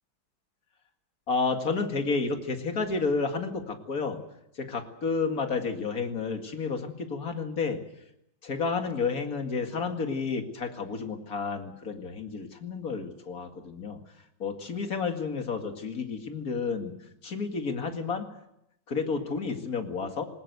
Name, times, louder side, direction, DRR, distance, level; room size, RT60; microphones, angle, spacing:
voice 1, 1.3-4.2 4.6-7.8 8.4-14.0 14.4-16.9 17.2-18.3 18.9-20.3, left 4 dB, 45° left, 5 dB, 2.5 m, -31 dB
20.5 x 19.0 x 8.1 m, 0.80 s
omnidirectional pair, 2.2 m